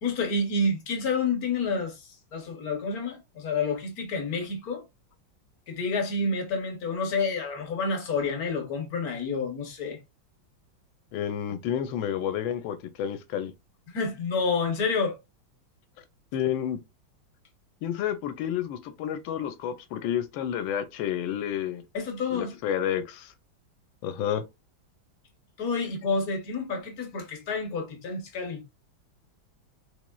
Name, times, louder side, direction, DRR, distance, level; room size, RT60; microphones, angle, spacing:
voice 1, 0.0-4.8 5.7-10.0 13.9-15.2 21.9-22.6 25.6-28.6, left 3 dB, 55° left, 1.2 m, -29 dB
voice 2, 11.1-13.5 16.3-16.8 17.8-21.8 22.3-23.3 24.0-24.4, left 10 dB, 85° left, 1.4 m, -30 dB
4.4 x 3.0 x 2.2 m
omnidirectional pair, 2.1 m